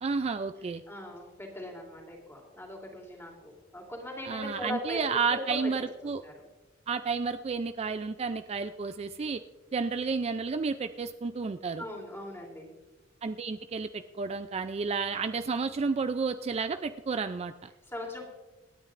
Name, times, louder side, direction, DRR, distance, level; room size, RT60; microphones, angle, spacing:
voice 1, 0.0-0.8 4.2-6.2 6.9-9.4 9.7-11.8 13.2-17.7, right 4 dB, 35° right, 9 dB, 0.4 m, -31 dB
voice 2, 0.9-5.0 5.3-5.7 6.0-6.3 11.8-12.7 17.9-18.2, left 1 dB, 15° left, 0 dB, 3.2 m, -40 dB
27.0 x 9.6 x 2.5 m, 1.1 s
head